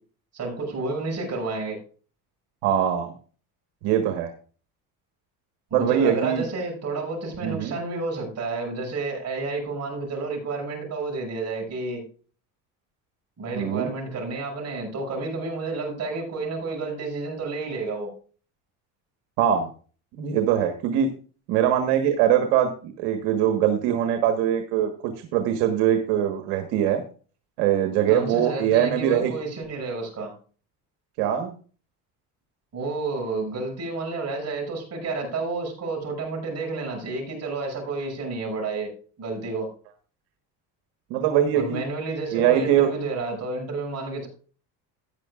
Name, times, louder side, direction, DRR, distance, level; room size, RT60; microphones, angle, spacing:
voice 1, 0.3-1.8 5.7-12.0 13.4-18.1 28.1-30.3 32.7-38.9 39.2-39.7 41.5-44.3, right 3 dB, 40° right, 0 dB, 6.5 m, -30 dB
voice 2, 2.6-3.1 3.8-4.3 5.7-6.4 7.4-7.7 13.5-13.9 19.4-19.7 20.2-21.1 21.5-27.0 27.6-29.3 31.2-31.5 41.1-41.8 42.3-42.9, right 10 dB, 85° right, 6 dB, 1.5 m, -22 dB
14.0 x 9.7 x 2.4 m, 0.39 s
cardioid pair, 110°, 39 cm